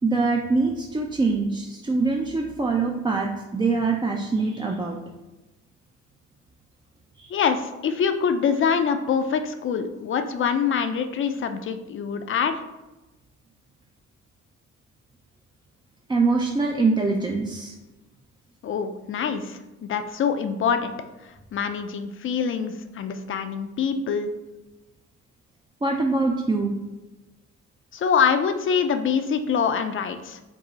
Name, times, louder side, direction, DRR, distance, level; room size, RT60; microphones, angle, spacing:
voice 1, 0.0-5.0 7.2-7.3 16.1-17.7 25.8-26.7, right 3 dB, 15° right, 0 dB, 0.4 m, -24 dB
voice 2, 7.3-12.6 18.6-20.9 21.5-24.3 27.9-30.4, left 6 dB, 45° left, 8 dB, 0.5 m, -25 dB
5.3 x 2.0 x 3.9 m, 1.1 s
cardioid pair, 90°, 30 cm